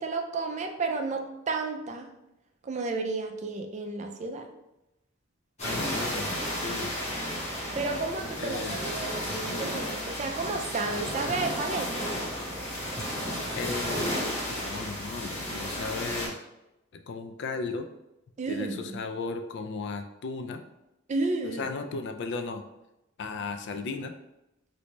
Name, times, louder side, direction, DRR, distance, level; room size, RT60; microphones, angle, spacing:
voice 1, 0.0-2.1 2.6-4.5 7.7-12.1 18.4-19.0 21.1-21.6, right 3 dB, 35° right, 4 dB, 0.4 m, -32 dB
voice 2, 5.6-7.0 7.6-7.7 8.4-9.2 13.6-16.3 16.9-17.9 18.5-20.6 21.5-22.6 23.2-24.1, left 4 dB, 60° left, 6 dB, 0.3 m, -36 dB
sound 1, 5.6-16.3, equal, 35° left, 1.2 m, -33 dB
3.2 x 2.7 x 3.0 m, 0.91 s
head